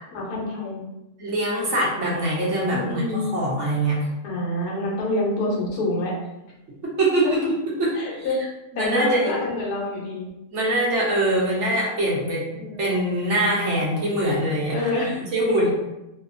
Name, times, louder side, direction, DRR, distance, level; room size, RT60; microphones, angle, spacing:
voice 1, 0.1-0.8 2.7-3.3 4.2-6.1 7.2-7.3 7.9-8.4 8.8-10.3 12.5-12.8 14.7-15.2 15.6-15.7, left 2 dB, 85° left, -4 dB, 1.2 m, -27 dB
voice 2, 1.2-4.0 6.8-8.3 8.8-9.4 10.5-15.0 15.3-15.7, right 1 dB, 60° right, -5 dB, 0.9 m, -23 dB
2.8 x 2.1 x 2.4 m, 0.94 s
omnidirectional pair, 1.6 m